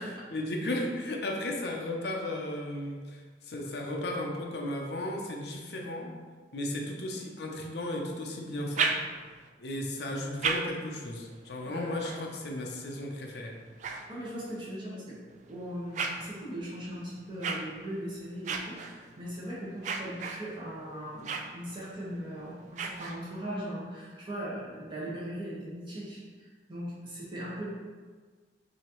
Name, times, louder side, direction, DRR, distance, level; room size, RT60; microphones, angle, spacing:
voice 1, 0.3-6.2 6.5-9.0 9.6-13.6, left 1 dB, 65° left, 1 dB, 0.6 m, -35 dB
sound 1, 8.5-9.5 10.1-14.7 15.3-23.6, right 4 dB, 45° right, 0.3 m, -38 dB
voice 2, 11.6-12.3 13.8-15.2 15.4-27.6, equal, 25° right, -7 dB, 1.3 m, -39 dB
5.9 x 2.8 x 3.0 m, 1.5 s
head